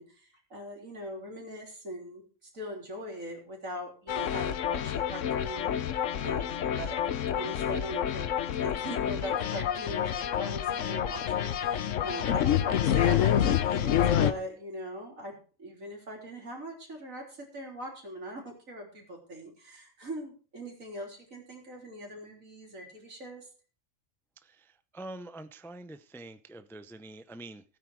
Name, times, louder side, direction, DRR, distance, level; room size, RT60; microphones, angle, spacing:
voice 1, 0.0-5.7 6.2-7.0 7.3-23.5, equal, 85° right, 1 dB, 3.9 m, -41 dB
sound 1, 4.1-14.3, left 10 dB, 75° left, 1.1 m, -28 dB
voice 2, 24.4-27.6, right 2 dB, 5° left, 12 dB, 0.4 m, -45 dB
16.0 x 9.1 x 4.8 m, 0.38 s
omnidirectional pair, 1.4 m